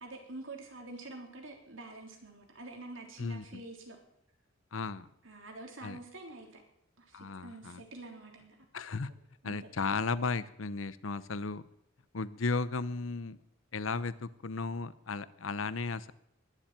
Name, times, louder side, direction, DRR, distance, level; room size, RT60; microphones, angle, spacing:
voice 1, 0.0-4.0 5.2-6.6 7.0-8.6 9.4-9.6, right 2 dB, 75° right, 3 dB, 3.6 m, -47 dB
voice 2, 3.2-3.6 4.7-5.1 5.8-6.0 7.1-7.8 8.7-9.1 9.4-11.6 12.1-13.4 13.7-16.1, left 4 dB, 85° left, 16 dB, 0.8 m, -35 dB
20.5 x 7.5 x 9.1 m, 0.77 s
head